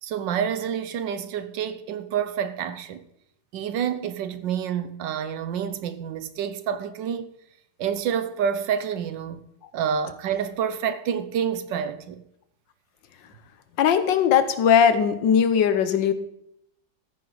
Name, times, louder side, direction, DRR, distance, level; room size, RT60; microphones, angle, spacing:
voice 1, 0.0-3.1 3.5-7.3 7.8-9.4 9.7-12.2, right 8 dB, 80° right, 1.5 m, -28 dB
voice 2, 13.8-16.1, left 8 dB, 85° left, 1.6 m, -19 dB
14.5 x 9.4 x 4.0 m
omnidirectional pair, 2.0 m